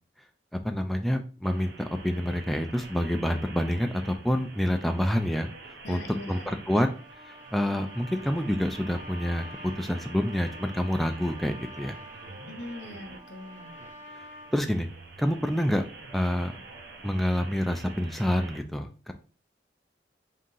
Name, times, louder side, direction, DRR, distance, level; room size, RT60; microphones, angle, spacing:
voice 1, 0.6-5.5 5.9-6.0 6.3-6.9 7.2-12.0 14.5-14.9 15.2-15.9 16.1-16.6 17.0-19.1, equal, ahead, 5 dB, 0.3 m, -27 dB
sound 1, 1.4-18.6, right 3 dB, 70° right, 0.8 m, -46 dB
voice 2, 5.8-6.6 12.4-13.8, left 1 dB, 80° left, 5 dB, 0.8 m, -41 dB
Trumpet, 6.6-14.6, left 1 dB, 50° right, 1.1 m, -48 dB
3.7 x 2.7 x 3.8 m, 0.37 s
head